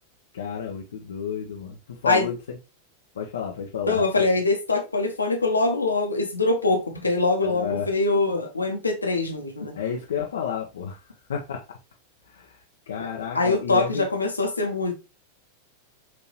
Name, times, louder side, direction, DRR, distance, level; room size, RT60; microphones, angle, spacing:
voice 1, 0.3-2.6 3.2-4.2 7.4-7.9 9.7-11.0 11.3-11.6 12.3-12.5 12.9-14.0, left 7 dB, 65° left, 0.6 m, -31 dB
voice 2, 3.8-9.7 13.3-14.9, left 3 dB, 80° left, 1.0 m, -23 dB
5.9 x 2.9 x 2.9 m
figure-of-eight pair, 90°, 0 cm